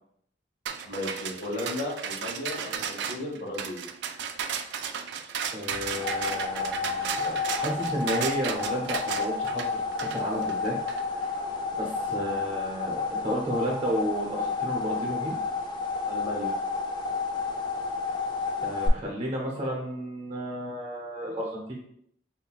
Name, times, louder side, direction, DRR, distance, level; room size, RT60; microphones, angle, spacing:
sound 1, 0.7-11.0, right 7 dB, 65° right, 0.3 m, -34 dB
voice 1, 0.8-3.8 16.1-16.5, left 1 dB, 60° left, -1 dB, 1.1 m, -34 dB
voice 2, 5.5-9.8 10.1-10.8 11.1-11.5 11.8-15.4 18.6-21.8, equal, 30° right, -1 dB, 0.7 m, -32 dB
sound 2, 5.7-18.9, left 4 dB, 25° left, 0.4 m, -31 dB
5.5 x 2.2 x 2.3 m, 0.70 s
head